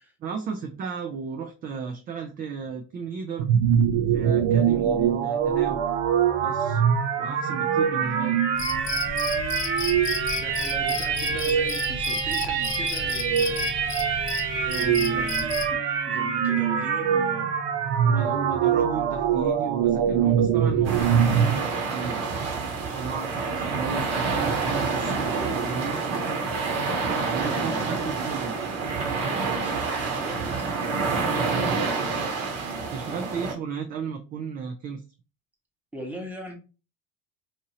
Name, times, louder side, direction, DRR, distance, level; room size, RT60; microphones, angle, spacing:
voice 1, 0.2-3.5 4.1-5.8 6.4-6.8 7.1-8.4 14.7-15.5 18.0-22.2 22.9-25.3 25.6-26.0 27.1-28.6 31.3-31.7 32.9-35.0, right 5 dB, 30° right, 0.3 m, -34 dB
sound 1, 3.4-21.5, right 8 dB, 85° right, 0.6 m, -24 dB
Cricket, 8.6-15.8, left 6 dB, 40° left, 0.6 m, -33 dB
voice 2, 10.3-15.8 16.1-17.5 18.7-18.8 27.3-27.9 29.5-30.8 32.6-33.3 35.9-36.5, equal, 5° right, 1.0 m, -40 dB
sound 2, 20.8-33.5, right 4 dB, 50° right, 1.1 m, -28 dB
2.8 x 2.6 x 2.7 m
supercardioid pair, 110°, 32 cm